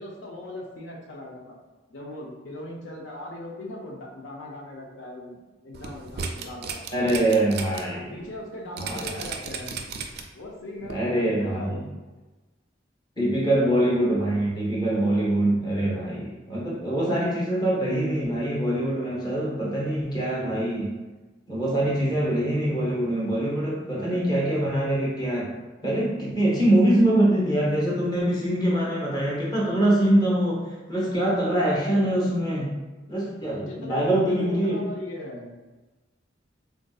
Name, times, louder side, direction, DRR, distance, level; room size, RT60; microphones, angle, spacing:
voice 1, 0.0-1.5 1.9-5.4 5.6-6.8 7.5-7.6 7.9-9.8 10.3-11.8 33.5-35.5, left 1 dB, 80° left, -2 dB, 0.5 m, -39 dB
sound 1, 5.7-7.8 8.2-8.3 8.8-10.4 10.9-11.0, right 6 dB, 55° right, 0.3 m, -34 dB
voice 2, 6.9-8.1 8.8-9.1 10.9-11.8 13.2-20.9 21.5-25.5 25.8-30.6 30.9-32.7 33.1-34.8, right 1 dB, 20° left, -5 dB, 0.8 m, -24 dB
3.5 x 2.6 x 2.3 m, 1.2 s
head